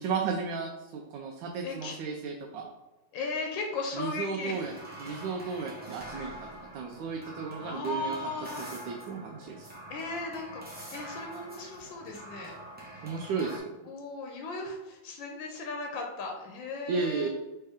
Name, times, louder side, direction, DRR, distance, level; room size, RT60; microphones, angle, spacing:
voice 1, 0.0-2.7 3.9-4.7 5.0-6.5 6.7-8.2 8.6-9.7 13.0-13.7 16.9-17.3, right 5 dB, 80° right, 1 dB, 1.2 m, -34 dB
voice 2, 1.6-2.0 3.1-4.6 7.6-8.7 9.9-12.6 13.9-17.3, left 3 dB, 80° left, 1 dB, 1.4 m, -37 dB
sound 1, 4.5-13.6, right 1 dB, 15° right, 0.4 m, -45 dB
4.4 x 3.3 x 3.5 m, 1.1 s
omnidirectional pair, 2.1 m